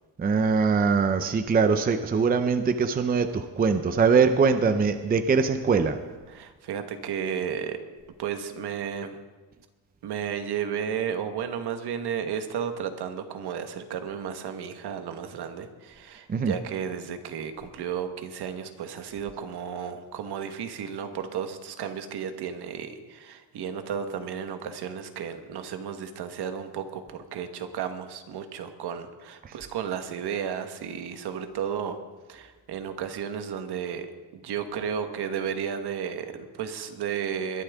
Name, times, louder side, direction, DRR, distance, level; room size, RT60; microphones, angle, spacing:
voice 1, 0.2-6.0 16.3-16.5 29.4-29.5, right 5 dB, 20° right, 8 dB, 0.6 m, -22 dB
voice 2, 6.3-7.8 8.2-9.2 10.0-32.0 32.3-34.1 34.3-37.6, right 8 dB, 65° right, 7 dB, 1.5 m, -33 dB
21.5 x 12.0 x 3.6 m, 1.3 s
cardioid pair, 145°, 43 cm